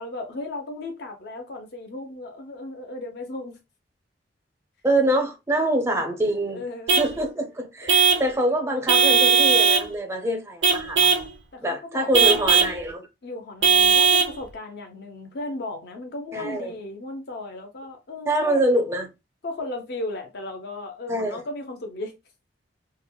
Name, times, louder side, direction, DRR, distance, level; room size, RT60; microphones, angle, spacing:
voice 1, 0.0-3.6 5.6-5.7 6.5-7.0 7.8-8.3 11.5-12.7 13.2-18.6 19.4-22.1, left 2 dB, 65° left, 0.7 m, -36 dB
voice 2, 4.8-6.6 7.0-11.2 11.6-13.1 16.3-16.7 18.3-19.1 21.1-21.4, right 1 dB, 15° right, 0.5 m, -25 dB
Vehicle horn car horn honking / Truck, 6.9-7.1 7.9-8.3 8.9-9.9 10.6-11.3 12.1-12.8 13.6-14.4, right 6 dB, 70° right, 0.5 m, -18 dB
3.5 x 2.1 x 2.2 m
head